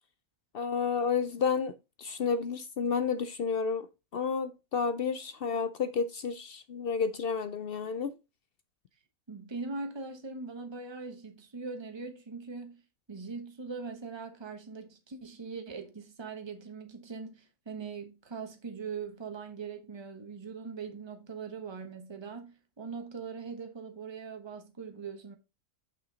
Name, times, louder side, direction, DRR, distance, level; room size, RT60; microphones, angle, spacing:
voice 1, 0.5-3.9 4.1-8.1, left 5 dB, 65° left, 0.6 m, -31 dB
voice 2, 9.3-12.8 13.1-25.4, right 4 dB, 20° right, 1.0 m, -41 dB
6.2 x 5.8 x 3.9 m
omnidirectional pair, 1.4 m